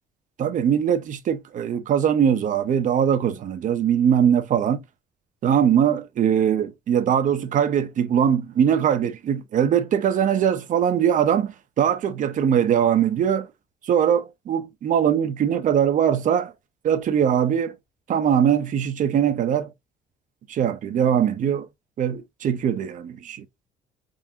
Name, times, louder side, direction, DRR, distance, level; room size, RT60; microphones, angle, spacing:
voice 1, 0.4-4.8 5.4-13.5 13.9-16.5 16.8-17.7 18.1-19.7 20.5-21.7 22.0-23.4, right 8 dB, 50° right, 0.6 m, -21 dB
3.7 x 2.6 x 2.7 m
cardioid pair, 110°, 17 cm